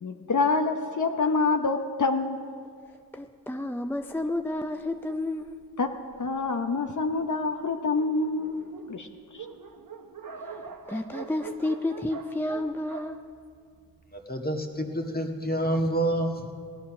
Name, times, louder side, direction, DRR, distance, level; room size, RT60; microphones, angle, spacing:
voice 1, 0.0-2.4 5.8-9.1 9.3-9.5, left 3 dB, 60° left, 5 dB, 0.9 m, -27 dB
voice 2, 2.9-5.6 10.4-13.2, left 1 dB, 5° left, 7 dB, 0.4 m, -31 dB
Dog, 3.5-6.5 7.2-7.3 7.5-7.6 7.8-14.2, right 5 dB, 80° right, 1.0 m, -44 dB
voice 3, 14.1-16.5, right 1 dB, 25° left, 2 dB, 1.7 m, -28 dB
17.0 x 11.5 x 6.1 m, 2.1 s
wide cardioid pair, 75°, 35 cm